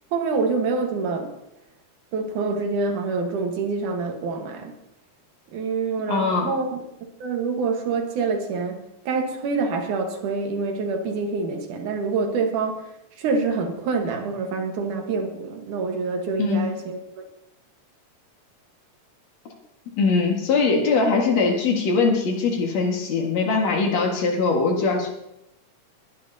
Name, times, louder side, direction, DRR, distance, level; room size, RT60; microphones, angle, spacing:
voice 1, 0.1-1.3 2.1-4.7 5.5-6.7 7.2-8.7 9.1-12.8 13.2-17.0, right 4 dB, 85° right, 3 dB, 2.9 m, -26 dB
voice 2, 6.1-6.5 16.4-16.7 20.0-25.1, left 4 dB, 60° left, 1 dB, 2.8 m, -21 dB
20.5 x 11.0 x 2.8 m, 0.86 s
omnidirectional pair, 3.4 m